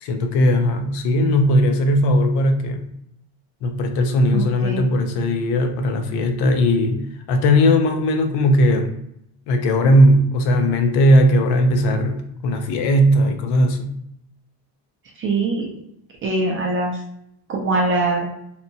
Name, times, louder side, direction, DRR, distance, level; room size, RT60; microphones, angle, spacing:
voice 1, 0.0-2.8 3.6-8.9 9.5-13.9, equal, 65° left, 5 dB, 0.5 m, -18 dB
voice 2, 4.3-4.9 15.2-15.7 16.2-17.0 17.5-18.3, right 2 dB, 30° right, -1 dB, 0.4 m, -22 dB
2.8 x 2.1 x 2.6 m, 0.75 s
cardioid pair, 160°, 44 cm